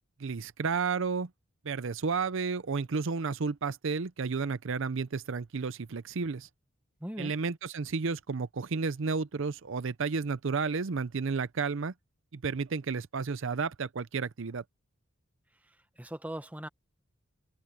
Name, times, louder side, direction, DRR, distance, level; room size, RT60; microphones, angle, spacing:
voice 1, 0.2-1.3 1.6-6.5 7.2-11.9 12.3-14.6, right 5 dB, 60° right, 0.6 m, -32 dB
voice 2, 7.0-7.3 15.5-16.7, right 1 dB, 5° right, 1.3 m, -40 dB
head